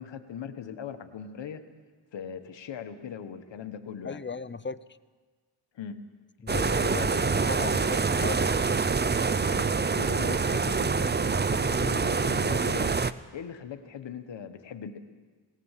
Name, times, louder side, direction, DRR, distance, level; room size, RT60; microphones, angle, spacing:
voice 1, 0.0-1.6 2.1-4.2 5.7-6.0 6.9-7.9 9.5-13.0 13.3-15.0, left 8 dB, 75° left, 8 dB, 1.4 m, -40 dB
voice 2, 4.0-4.8 6.4-7.1 7.4-8.9, left 4 dB, 25° left, 15 dB, 0.8 m, -37 dB
sound 1, 6.5-13.1, right 4 dB, 25° right, 0.7 m, -26 dB
19.5 x 18.0 x 7.5 m, 1.4 s
cardioid pair, 60°, 45 cm